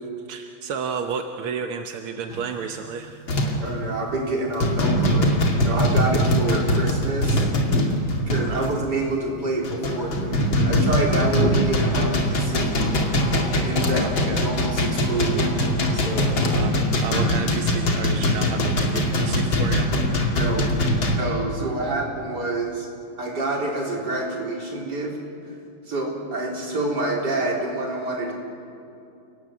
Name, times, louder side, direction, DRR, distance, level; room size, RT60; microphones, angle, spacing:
voice 1, 0.3-3.2 8.5-8.7 14.0-14.5 16.2-19.9, right 6 dB, 85° right, 5 dB, 1.9 m, -32 dB
sound 1, 2.3-2.5 3.3-3.7 4.1-4.3 4.6-8.7 9.3-21.2, left 1 dB, 65° left, 3.2 m, -22 dB
voice 2, 3.6-7.5 8.1-12.9 13.6-15.5 15.9-16.4 20.4-20.7 21.1-22.9 23.2-25.2 25.4-25.5 25.9-28.3, right 2 dB, 50° right, -1 dB, 4.7 m, -27 dB
30.0 x 19.0 x 8.3 m, 2.6 s
omnidirectional pair, 2.3 m